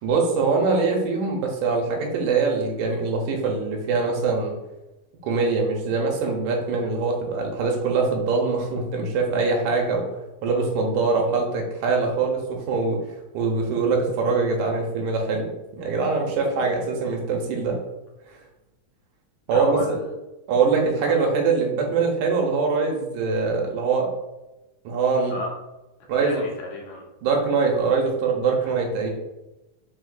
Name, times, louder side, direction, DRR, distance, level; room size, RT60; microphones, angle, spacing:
voice 1, 0.0-4.5 5.2-10.1 10.4-13.0 13.3-17.8 19.5-19.8 20.5-24.1 24.9-25.4 26.1-26.4 27.2-29.1, right 4 dB, 80° right, 1 dB, 2.1 m, -23 dB
voice 2, 19.5-20.1 21.0-21.1 25.3-25.5 26.2-27.0 28.6-28.7, left 1 dB, 75° left, -1 dB, 2.0 m, -34 dB
5.1 x 3.5 x 2.4 m, 1.0 s
omnidirectional pair, 3.7 m